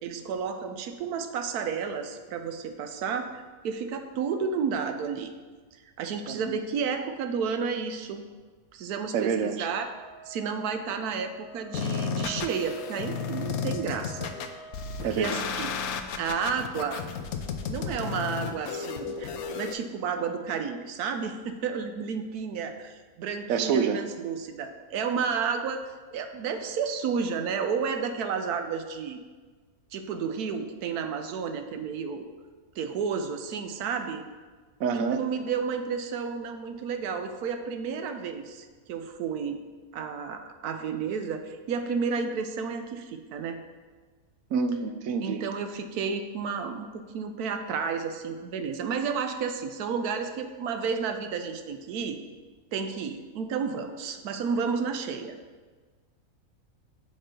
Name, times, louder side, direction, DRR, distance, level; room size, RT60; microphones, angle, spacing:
voice 1, 0.0-5.3 6.0-8.2 8.7-9.9 10.3-14.3 15.0-17.0 17.7-25.8 26.1-29.2 29.9-32.2 32.8-34.2 34.9-39.6 39.9-43.6 45.2-52.2 52.7-55.4, right 6 dB, 90° right, 7 dB, 1.2 m, -31 dB
voice 2, 9.1-9.7 15.0-15.6 23.5-24.0 34.8-35.2 44.5-45.4, right 6 dB, 70° right, 8 dB, 1.0 m, -27 dB
Wind instrument woodwind instrument, 9.9-15.2, right 3 dB, 40° left, 2.1 m, -47 dB
sound 1, 11.7-19.7, left 6 dB, 75° left, 1.1 m, -33 dB
7.6 x 5.0 x 4.4 m, 1.4 s
omnidirectional pair, 1.6 m